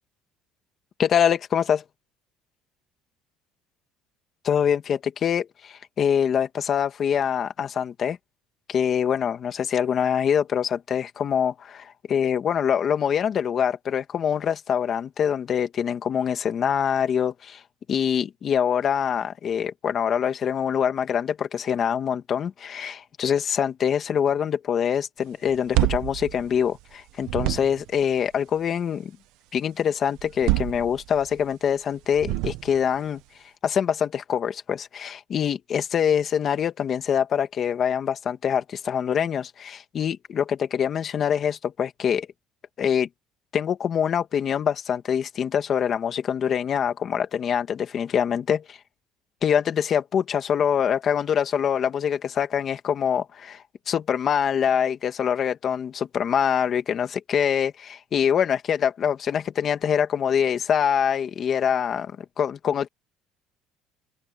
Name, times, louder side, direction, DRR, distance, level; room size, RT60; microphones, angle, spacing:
voice 1, 1.0-1.8 4.4-8.2 8.7-17.6 17.9-29.1 29.5-33.2 33.6-42.3 42.8-43.1 43.5-48.8 49.4-62.1 62.4-62.9, left 8 dB, 35° left, 2.1 m, -24 dB
sound 1, 25.5-26.9 27.2-28.0 30.2-31.4 32.1-33.0, right 18 dB, 70° right, 1.2 m, -27 dB
open air
cardioid pair, 160°, 0 cm